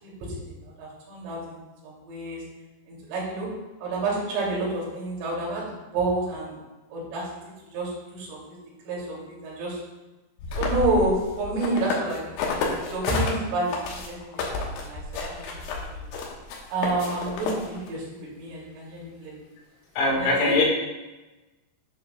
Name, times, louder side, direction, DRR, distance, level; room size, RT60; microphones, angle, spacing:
voice 1, 0.0-2.4 2.9-3.5 3.8-6.5 6.9-7.3 7.7-8.6 8.9-9.8 10.5-15.0 15.3-16.1 16.7-19.4 20.1-20.7, right 2 dB, 80° right, -5 dB, 5.5 m, -29 dB
sound 1, 10.4-13.3 13.7-17.9, left 4 dB, 70° left, 3.2 m, -30 dB
voice 2, 20.0-20.6, left 2 dB, 90° left, -1 dB, 4.5 m, -21 dB
11.5 x 9.2 x 2.3 m, 1.1 s
omnidirectional pair, 6.0 m